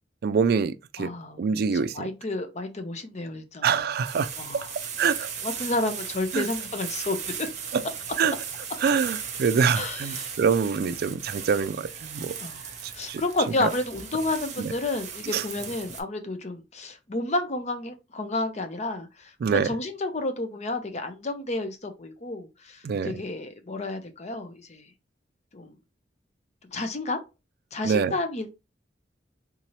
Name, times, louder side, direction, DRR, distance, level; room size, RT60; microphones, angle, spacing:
voice 1, 0.2-1.1 1.4-2.1 3.6-4.3 5.0-5.3 6.3-6.5 7.7-7.8 8.2-8.3 8.8-12.4 13.1-13.2 13.6-13.7 14.6-14.7 15.3-15.4 19.4-19.7 22.8-23.2 27.8-28.1, right 6 dB, 60° right, 0.3 m, -25 dB
voice 2, 1.0-1.4 1.7-3.8 4.4-4.7 5.4-7.5 9.7-10.3 12.4-12.6 12.9-24.8 25.5-25.7 26.7-27.2 27.7-28.5, left 2 dB, 40° left, 0.6 m, -31 dB
sound 1, 4.0-16.0, right 7 dB, 40° right, 0.8 m, -37 dB
3.7 x 2.8 x 3.0 m
head